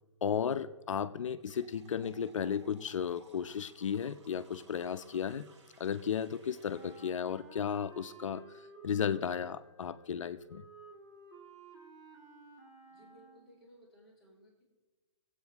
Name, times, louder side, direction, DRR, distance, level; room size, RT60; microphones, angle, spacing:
voice 1, 0.2-5.4 5.8-8.4 8.8-10.6, left 7 dB, 85° left, 11 dB, 0.7 m, -34 dB
sound 1, 1.4-7.3, right 3 dB, 70° right, 2.8 m, -62 dB
Wind instrument woodwind instrument, 6.7-13.7, right 4 dB, 20° right, 2.3 m, -55 dB
voice 2, 12.9-14.6, equal, ahead, -8 dB, 4.7 m, -60 dB
22.5 x 8.3 x 3.5 m, 1.2 s
hypercardioid pair, 160°, 16 cm